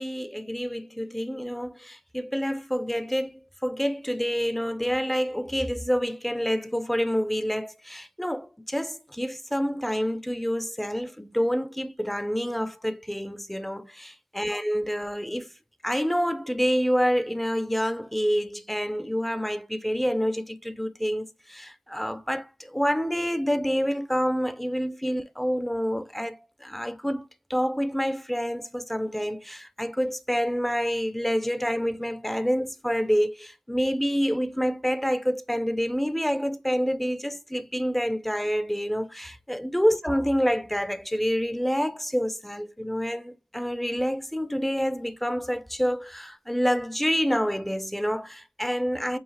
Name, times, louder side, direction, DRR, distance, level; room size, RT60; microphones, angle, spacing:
voice 1, 0.0-15.5 15.8-49.2, equal, 5° left, 0.4 m, -27 dB
4.7 x 2.7 x 3.1 m
wide cardioid pair, 125°, 5 cm